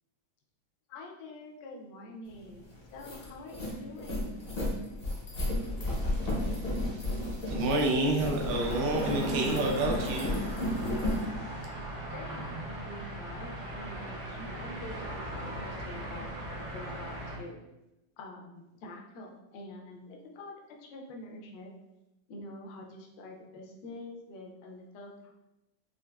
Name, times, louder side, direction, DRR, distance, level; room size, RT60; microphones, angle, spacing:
voice 1, 0.9-4.4 12.1-17.6 18.2-21.7 22.3-25.3, left 2 dB, 70° left, 1 dB, 1.1 m, -46 dB
sound 1, 2.4-2.5 2.8-11.2, left 1 dB, 55° left, 0.7 m, -33 dB
voice 2, 5.9-10.8, right 2 dB, 70° right, 1 dB, 1.2 m, -31 dB
sound 2, 8.5-17.4, right 1 dB, 55° right, 0.8 m, -39 dB
4.4 x 2.4 x 2.3 m, 0.95 s
omnidirectional pair, 2.1 m